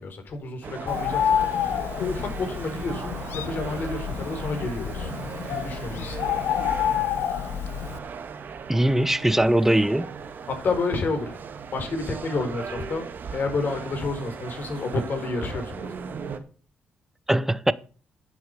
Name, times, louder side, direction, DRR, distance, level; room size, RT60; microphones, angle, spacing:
voice 1, 0.0-5.1 5.5-6.2 10.5-11.4 11.7-15.9, left 3 dB, 55° left, 4.6 m, -30 dB
sound 1, 0.6-16.4, right 6 dB, 55° right, 1.9 m, -38 dB
Bird, 0.9-8.0, left 9 dB, 75° left, 1.0 m, -28 dB
voice 2, 8.7-10.1 17.3-17.7, right 1 dB, 10° right, 1.0 m, -21 dB
10.5 x 7.9 x 6.8 m
supercardioid pair, 55°, 4 cm